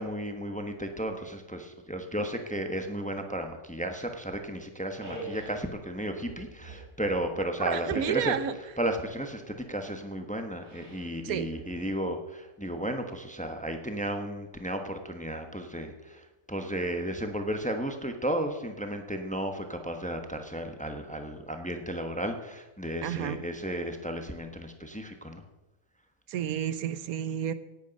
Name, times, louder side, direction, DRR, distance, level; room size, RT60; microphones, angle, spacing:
voice 1, 0.0-8.3 8.8-25.4, right 1 dB, 5° left, 5 dB, 1.0 m, -34 dB
sound 1, 5.0-5.6 6.2-7.4 7.9-8.7 10.6-11.1 11.5-12.1, right 2 dB, 70° right, 3.5 m, -42 dB
voice 2, 7.6-8.6 11.2-11.5 23.0-23.4 26.3-27.5, right 9 dB, 85° right, 14 dB, 1.2 m, -30 dB
18.0 x 8.5 x 5.3 m, 1.1 s
omnidirectional pair, 1.5 m